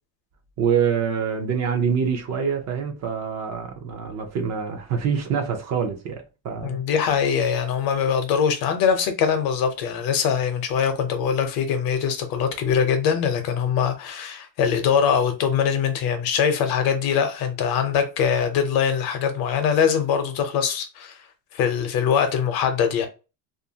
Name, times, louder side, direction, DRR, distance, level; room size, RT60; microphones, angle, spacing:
voice 1, 0.6-6.8, right 7 dB, 40° right, 0.5 m, -25 dB
voice 2, 6.6-21.1 21.5-23.1, left 7 dB, 55° left, 0.7 m, -22 dB
2.5 x 2.3 x 2.7 m
cardioid pair, 160°, 42 cm